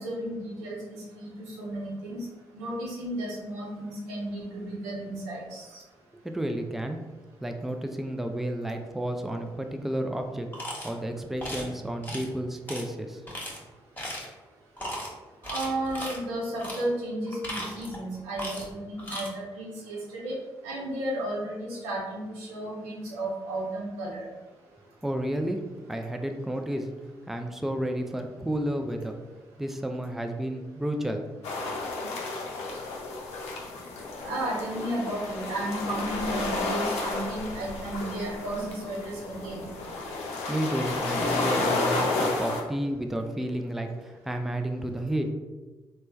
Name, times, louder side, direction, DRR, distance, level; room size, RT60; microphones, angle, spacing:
voice 1, 0.0-2.2 2.5-5.8 15.4-20.3 20.6-24.3 34.2-39.7, right 1 dB, 85° right, -4 dB, 0.7 m, -33 dB
voice 2, 6.2-7.0 7.4-10.5 10.8-13.2 25.0-26.9 27.3-29.2 29.6-31.3 40.5-45.3, right 1 dB, ahead, 5 dB, 0.4 m, -31 dB
sound 1, 10.5-10.9 11.4-11.7 12.0-12.3 12.7-12.8 13.3-13.6 14.0-14.3 14.8-15.1 15.4-16.2 16.6-16.8 17.3-18.0 18.4-18.7 19.0-19.3, equal, 15° left, 1.2 m, -36 dB
sound 2, 31.4-42.6, left 3 dB, 75° left, 0.6 m, -31 dB
3.2 x 2.2 x 3.0 m, 1.2 s
hypercardioid pair, 40°, 11 cm